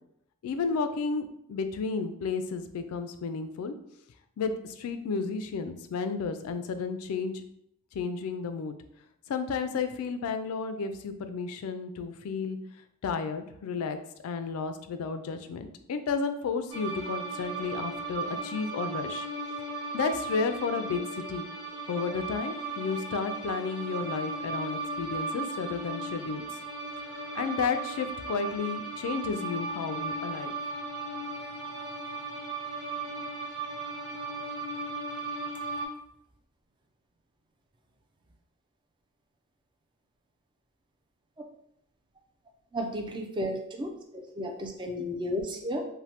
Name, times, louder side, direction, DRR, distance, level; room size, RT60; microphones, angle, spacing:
voice 1, 0.4-3.7 4.4-7.3 7.9-8.7 9.3-12.6 13.0-14.0 14.2-19.3 19.9-21.5 21.9-26.5 27.3-30.5, left 5 dB, 85° left, 9 dB, 0.3 m, -32 dB
sound 1, 16.7-35.9, right 3 dB, 85° right, 0.9 m, -36 dB
voice 2, 42.7-45.8, equal, 20° right, 2 dB, 0.4 m, -33 dB
3.2 x 2.1 x 2.8 m, 0.76 s
head